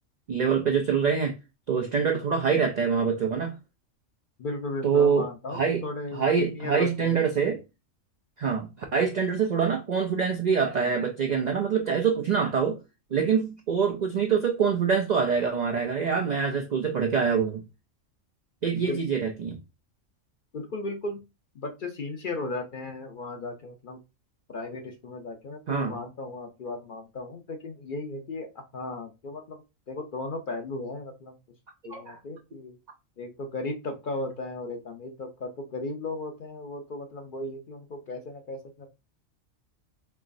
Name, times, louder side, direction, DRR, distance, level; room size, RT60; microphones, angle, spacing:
voice 1, 0.3-1.4 1.7-3.6 4.8-5.8 6.1-7.6 8.4-12.8 13.1-17.6 18.6-19.6 25.7-26.0 31.9-32.2, right 6 dB, 65° right, 0.4 m, -25 dB
voice 2, 4.4-7.3 18.8-19.0 20.5-21.2 21.5-24.0 24.5-29.6 29.9-31.4 31.8-32.8 33.2-38.9, left 2 dB, 55° left, 0.6 m, -36 dB
4.5 x 2.9 x 2.5 m
omnidirectional pair, 1.3 m